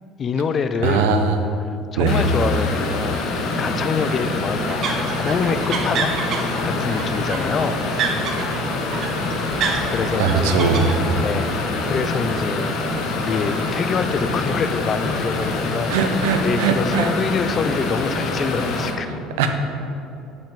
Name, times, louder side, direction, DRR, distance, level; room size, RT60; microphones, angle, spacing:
voice 1, 0.2-1.2 1.7-6.2 6.6-7.8 9.9-10.5 11.1-12.6 13.1-19.2, left 5 dB, 35° left, 11 dB, 0.4 m, -26 dB
voice 2, 0.8-1.4 2.0-2.2 10.2-10.8 15.9-17.1 19.4-19.5, right 5 dB, 90° right, 6 dB, 0.6 m, -20 dB
sound 1, 2.1-18.9, left 2 dB, 60° left, 0.9 m, -25 dB
sound 2, 4.7-11.9, right 5 dB, 55° right, 0.7 m, -29 dB
5.9 x 5.4 x 5.1 m, 2.7 s
supercardioid pair, 105°, 0 cm